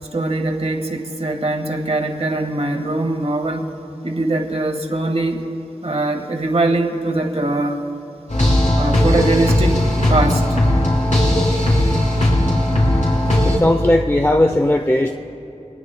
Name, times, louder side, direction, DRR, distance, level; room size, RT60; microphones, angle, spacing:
voice 1, 0.1-3.7 4.0-5.4 5.8-7.9 8.8-9.8 10.1-10.6, right 2 dB, 55° right, 4 dB, 1.5 m, -21 dB
sound 1, 8.3-13.6, left 1 dB, 75° left, 4.2 m, -17 dB
voice 2, 13.4-15.2, left 1 dB, 20° left, 4 dB, 0.6 m, -17 dB
23.0 x 19.0 x 2.2 m, 2.9 s
wide cardioid pair, 65°, 13 cm